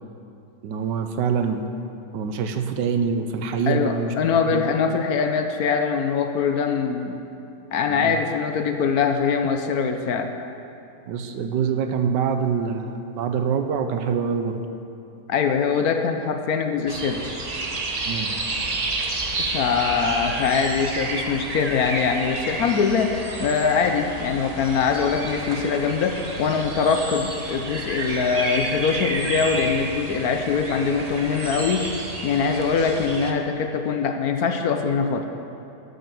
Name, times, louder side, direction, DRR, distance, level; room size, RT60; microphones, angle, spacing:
voice 1, 0.6-1.6 2.1-4.2 4.5-4.7 7.9-8.2 11.1-14.6 18.1-18.3, right 6 dB, 85° right, 7 dB, 1.4 m, -25 dB
voice 2, 3.7-7.2 7.7-10.3 15.3-17.4 19.4-23.1 23.4-31.9 32.2-35.3, left 6 dB, 65° left, 6 dB, 1.1 m, -23 dB
sound 1, 16.9-33.3, right 2 dB, 35° right, 0.6 m, -30 dB
12.5 x 6.5 x 7.0 m, 2.7 s
omnidirectional pair, 1.9 m